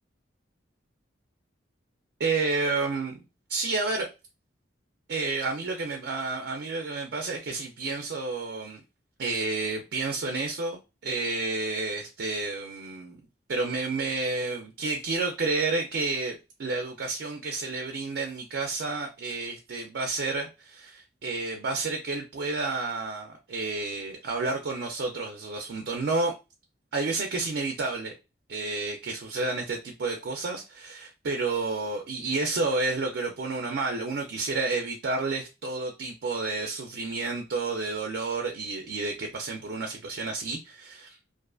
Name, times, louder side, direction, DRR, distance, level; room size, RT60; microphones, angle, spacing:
voice 1, 2.2-3.2 3.5-4.1 5.1-8.8 9.2-13.2 13.5-26.3 26.9-28.1 28.5-41.2, right 3 dB, 65° right, 0.4 m, -30 dB
2.4 x 2.4 x 2.3 m
head